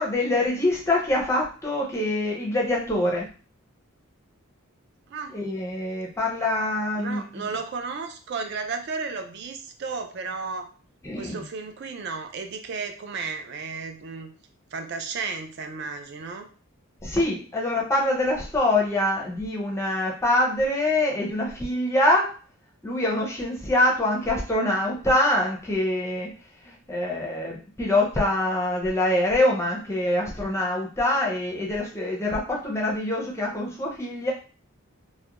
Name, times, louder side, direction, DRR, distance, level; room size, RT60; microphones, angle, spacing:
voice 1, 0.0-3.3 5.3-7.2 11.0-11.4 17.0-22.3 22.8-26.3 26.9-34.3, left 1 dB, 10° left, -2 dB, 0.5 m, -24 dB
voice 2, 7.0-10.7 11.1-14.3 14.7-16.5, right 4 dB, 50° right, 6 dB, 0.3 m, -33 dB
2.3 x 2.1 x 2.8 m, 0.38 s
head